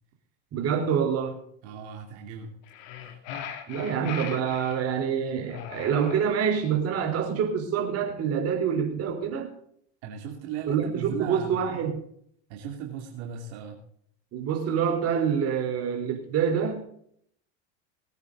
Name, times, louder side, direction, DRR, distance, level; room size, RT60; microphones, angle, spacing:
voice 1, 0.5-1.4 3.7-9.5 10.7-12.0 14.3-16.8, right 7 dB, 45° right, 3 dB, 4.2 m, -26 dB
voice 2, 1.6-2.6 3.0-3.2 10.0-11.9 12.5-13.8, right 7 dB, 75° right, 1 dB, 2.7 m, -37 dB
sound 1, 2.6-4.8 5.5-6.7, left 8 dB, 75° left, 2.6 m, -39 dB
20.0 x 9.3 x 4.0 m, 0.65 s
supercardioid pair, 115°, 34 cm